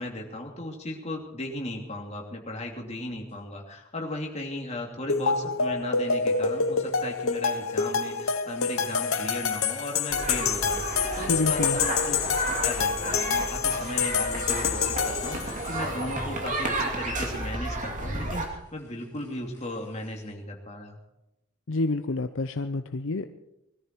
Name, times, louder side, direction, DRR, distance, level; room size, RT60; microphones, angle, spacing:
voice 1, 0.0-10.8 11.1-12.2 12.5-21.0, left 1 dB, 30° left, 0 dB, 2.8 m, -36 dB
sound 1, 3.3-3.4 5.1-5.4 5.7-8.1 8.5-20.3, left 4 dB, 15° left, 7.6 m, -53 dB
sound 2, 5.1-15.7, left 5 dB, 90° left, 1.1 m, -27 dB
sound 3, 10.1-18.5, right 1 dB, 40° right, 2.6 m, -32 dB
voice 2, 11.2-11.8 21.7-23.3, left 2 dB, 65° left, 9 dB, 0.6 m, -28 dB
21.0 x 13.5 x 4.6 m, 0.87 s
head